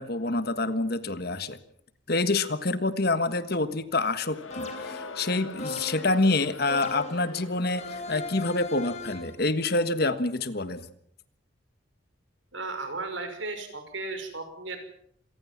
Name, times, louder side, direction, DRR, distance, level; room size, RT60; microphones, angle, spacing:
voice 1, 0.0-1.6 2.1-10.8, left 2 dB, 50° left, 12 dB, 1.6 m, -27 dB
Crowd, 4.1-9.2, left 3 dB, 90° left, 1.7 m, -43 dB
sound 1, 4.5-5.1 5.6-6.2 6.7-7.3 7.8-9.4, left 3 dB, 35° left, 3.6 m, -38 dB
voice 2, 12.5-14.8, right 3 dB, 70° right, 7 dB, 5.6 m, -35 dB
27.0 x 19.0 x 7.5 m, 0.70 s
head